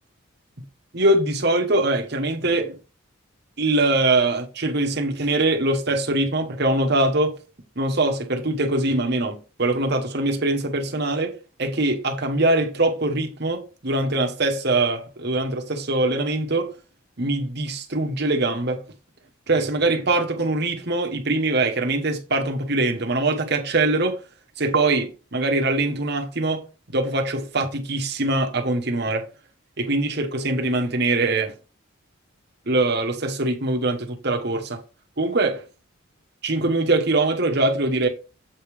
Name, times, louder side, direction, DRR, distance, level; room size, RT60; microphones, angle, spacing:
voice 1, 0.9-2.8 3.6-7.4 7.8-16.7 17.2-18.8 19.5-24.2 24.6-26.6 26.9-29.2 29.8-31.5 32.7-34.8 35.2-35.6 36.4-38.1, right 2 dB, 50° right, 1.2 m, -23 dB
7.9 x 3.5 x 4.8 m
head